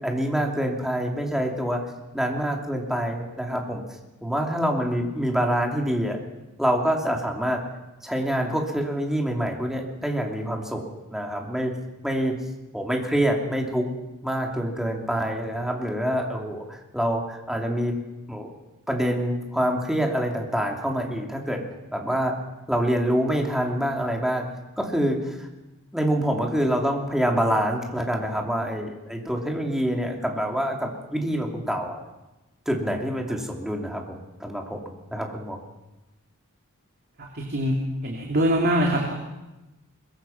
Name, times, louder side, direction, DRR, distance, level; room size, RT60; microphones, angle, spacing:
voice 1, 0.0-1.8 2.1-3.8 4.2-6.2 6.6-7.6 8.0-10.8 11.1-11.7 12.0-12.3 12.7-13.9 14.2-18.0 18.3-18.5 18.9-21.6 21.9-22.3 22.7-24.5 24.8-25.5 25.9-32.0 32.6-35.6, equal, ahead, 1 dB, 3.1 m, -26 dB
voice 2, 37.3-37.7 38.0-39.1, equal, 45° right, 0 dB, 2.8 m, -23 dB
22.5 x 21.5 x 5.9 m, 1.0 s
head